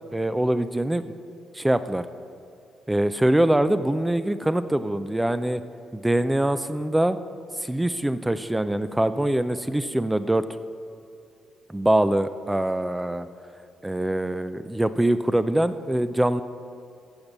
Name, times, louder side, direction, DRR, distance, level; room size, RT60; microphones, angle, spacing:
voice 1, 0.1-1.0 1.5-2.1 2.9-5.6 5.9-7.2 7.6-10.4 11.7-13.3 13.8-16.4, right 1 dB, 10° right, 12 dB, 0.5 m, -23 dB
15.0 x 5.2 x 7.3 m, 2.6 s
cardioid pair, 90°, 0 cm